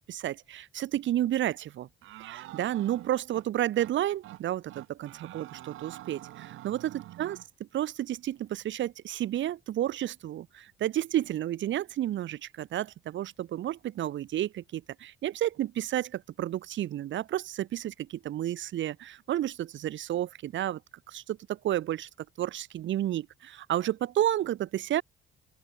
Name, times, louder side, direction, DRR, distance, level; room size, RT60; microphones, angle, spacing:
voice 1, 0.1-1.9 2.2-7.4 7.7-20.8 21.1-22.1 22.4-25.0, right 12 dB, 70° right, 1.2 m, -31 dB
sound 1, 2.0-3.5 3.8-4.0 4.2-4.4 4.7-7.5, right 16 dB, 90° right, 2.3 m, -46 dB
open air
cardioid pair, 90°, 20 cm